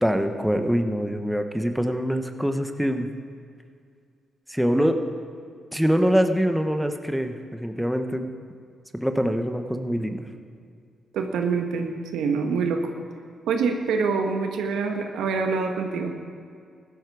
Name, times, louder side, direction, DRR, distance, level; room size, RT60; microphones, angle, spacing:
voice 1, 0.0-3.1 4.5-5.0 5.7-8.3 8.9-10.3, equal, ahead, 6 dB, 1.1 m, -24 dB
voice 2, 11.1-12.9 13.5-16.1, right 5 dB, 90° right, 4 dB, 1.3 m, -25 dB
15.5 x 12.5 x 4.8 m, 2.3 s
cardioid pair, 75°, 0 cm